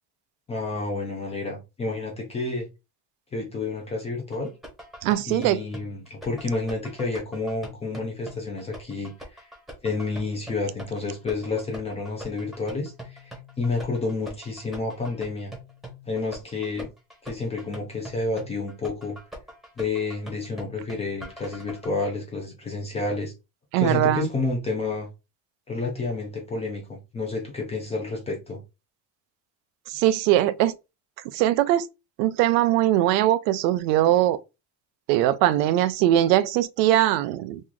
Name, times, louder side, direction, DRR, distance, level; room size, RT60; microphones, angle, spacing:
voice 1, 0.5-2.7 3.3-4.5 5.2-9.5 9.8-13.3 13.6-15.5 16.1-16.9 17.2-19.2 19.8-23.3 23.8-25.1 25.7-28.6, left 3 dB, 15° left, 0.3 m, -30 dB
sound 1, 4.3-21.9, equal, ahead, 0.8 m, -43 dB
voice 2, 5.0-5.6 23.7-24.3 29.9-30.7 31.3-31.9 32.2-34.4 35.1-37.6, right 13 dB, 85° right, 0.6 m, -21 dB
3.1 x 2.3 x 3.7 m
cardioid pair, 160°, 49 cm